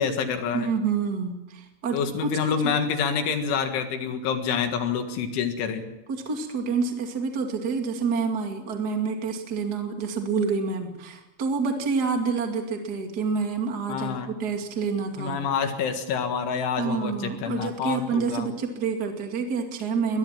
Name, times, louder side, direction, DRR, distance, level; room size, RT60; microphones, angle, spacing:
voice 1, 0.0-0.7 1.9-5.9 13.9-14.3 15.2-18.5, left 6 dB, 70° left, 6 dB, 4.0 m, -27 dB
voice 2, 0.5-2.7 6.1-15.4 16.8-20.2, right 5 dB, 45° right, 3 dB, 1.2 m, -28 dB
22.5 x 20.5 x 7.5 m, 1.0 s
omnidirectional pair, 6.0 m